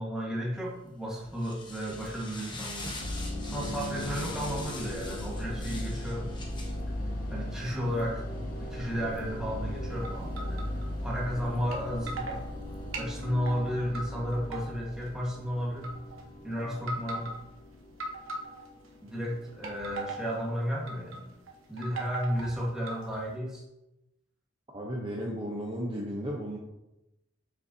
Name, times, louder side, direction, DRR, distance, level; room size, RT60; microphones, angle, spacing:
voice 1, 0.0-3.0 3.4-6.3 7.3-8.2 8.6-12.4 13.0-15.9 16.4-17.3 19.0-21.3 21.7-23.6, equal, 5° right, -5 dB, 1.4 m, -33 dB
sound 1, 0.7-13.1, left 2 dB, 20° left, 0.9 m, -45 dB
sound 2, 3.0-21.3, left 1 dB, 45° left, 1.3 m, -38 dB
sound 3, 10.0-10.8 11.7-11.8 12.1-12.4 12.9-14.0 14.3-15.1 15.8-16.2 16.8-17.4 18.0-18.9 19.5-20.4 20.9-21.2 21.5-23.3, right 2 dB, 75° right, 1.0 m, -39 dB
voice 2, 24.7-26.6, equal, 25° right, -2 dB, 0.7 m, -34 dB
6.9 x 5.5 x 2.7 m, 0.93 s
head